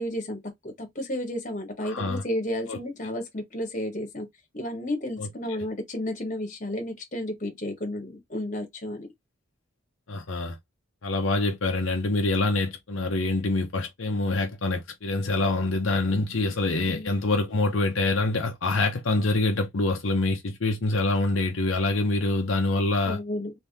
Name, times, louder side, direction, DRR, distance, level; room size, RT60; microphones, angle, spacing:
voice 1, 0.0-4.3 4.5-9.1 16.9-17.2 23.1-23.5, left 1 dB, 40° left, 1.3 m, -32 dB
voice 2, 1.8-2.2 2.7-2.8 5.2-5.6 10.1-10.6 11.0-23.2, left 2 dB, 75° left, 0.8 m, -25 dB
3.5 x 2.9 x 2.8 m
head